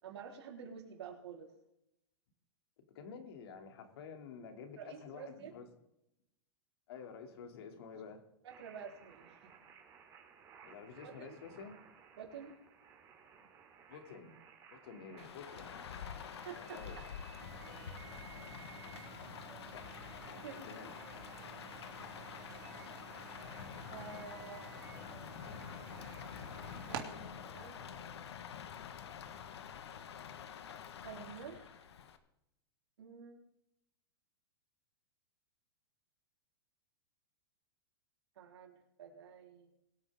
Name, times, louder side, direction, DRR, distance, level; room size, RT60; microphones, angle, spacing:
voice 1, 0.0-1.5 4.8-5.5 8.4-9.5 11.0-11.4 12.2-12.6 16.4-16.8 20.4-20.6 23.9-24.6 26.9-28.3 31.0-31.8 33.0-33.4 38.4-39.7, right 6 dB, 80° right, 1 dB, 3.8 m, -49 dB
voice 2, 2.9-5.7 6.9-8.2 10.6-11.8 13.9-14.4 14.7-15.8 16.5-17.1 19.7-19.9 20.3-20.9, left 6 dB, 65° left, 5 dB, 2.7 m, -50 dB
sound 1, 8.5-27.0, right 7 dB, 25° right, 2.9 m, -59 dB
Rain, 15.2-32.2, left 8 dB, 80° left, 1.4 m, -48 dB
sound 2, 17.4-27.0, right 11 dB, 55° right, 2.6 m, -52 dB
22.0 x 9.1 x 3.6 m, 0.83 s
hypercardioid pair, 145°, 14 cm